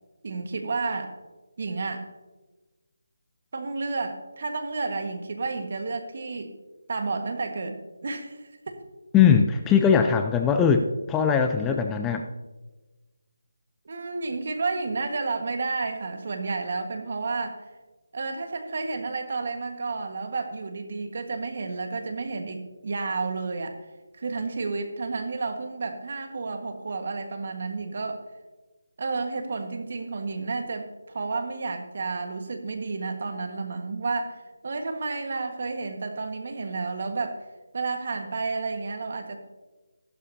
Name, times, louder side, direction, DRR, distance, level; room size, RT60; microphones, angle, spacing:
voice 1, 0.2-1.1 1.6-2.1 3.5-6.5 6.9-8.8 11.7-11.8 13.8-17.7 18.1-23.8 24.2-28.2 29.0-37.4 37.7-39.4, right 3 dB, 50° right, 6 dB, 1.5 m, -31 dB
voice 2, 9.1-12.2, left 7 dB, 10° left, 5 dB, 0.4 m, -20 dB
14.0 x 12.0 x 2.8 m, 1.2 s
figure-of-eight pair, 165°, 0 cm